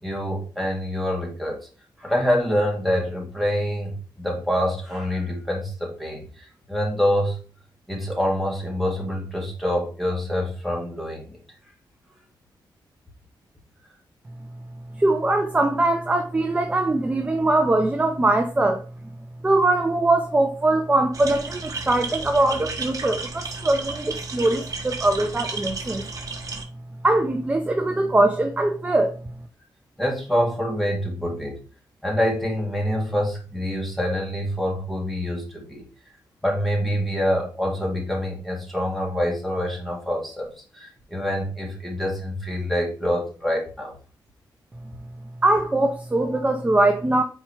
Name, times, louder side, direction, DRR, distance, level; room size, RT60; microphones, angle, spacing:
voice 1, 0.0-1.6 2.0-7.4 7.9-11.4 30.0-31.6 32.0-35.8 36.4-43.9, equal, ahead, 2.2 m, -26 dB
voice 2, 14.9-18.8 19.4-26.0 27.0-29.1 45.4-47.2, right 2 dB, 15° right, 0.7 m, -21 dB
sound 1, 21.1-26.6, right 4 dB, 45° right, 1.2 m, -33 dB
4.6 x 4.5 x 4.6 m
wide cardioid pair, 120°, 8 cm